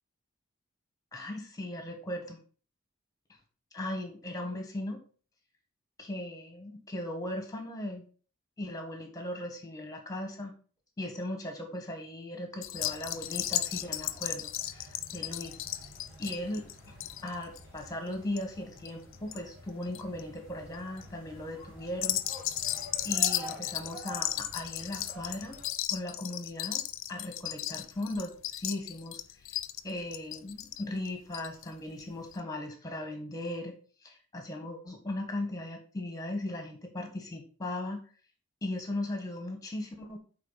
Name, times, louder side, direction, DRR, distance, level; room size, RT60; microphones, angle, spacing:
voice 1, 1.1-2.4 3.7-5.0 6.0-8.1 8.6-10.5 11.0-15.6 16.2-16.6 17.2-22.2 23.0-25.6 25.9-26.8 27.1-29.2 29.8-33.7 34.0-38.0 38.6-40.2, left 1 dB, 20° left, 4 dB, 1.5 m, -38 dB
sound 1, 12.6-19.4 19.7-20.2 20.7-21.0 21.9-31.7 32.0-32.1 32.3-32.4, left 13 dB, 75° left, 0.5 m, -35 dB
sound 2, 12.7-25.7, right 1 dB, 15° right, 4.1 m, -50 dB
8.8 x 3.8 x 4.1 m, 0.40 s
head